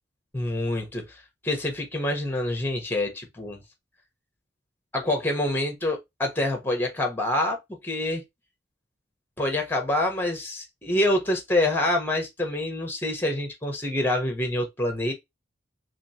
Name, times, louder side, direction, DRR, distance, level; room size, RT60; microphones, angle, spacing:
voice 1, 0.3-1.0 1.4-3.6 4.9-7.6 7.8-8.2 9.4-15.1, left 1 dB, 10° left, 1.0 m, -26 dB
3.1 x 3.0 x 2.7 m
head